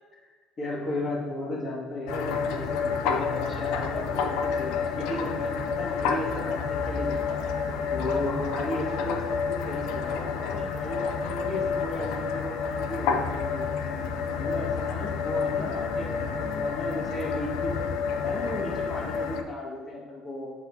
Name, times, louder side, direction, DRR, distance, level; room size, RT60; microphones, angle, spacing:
voice 1, 0.6-13.8 14.3-16.2 16.5-20.5, left 1 dB, 40° left, -3 dB, 2.0 m, -35 dB
radiator ST, 2.1-19.4, left 5 dB, 80° left, 0.5 m, -29 dB
7.3 x 5.9 x 2.8 m, 1.5 s
cardioid pair, 110°, 0 cm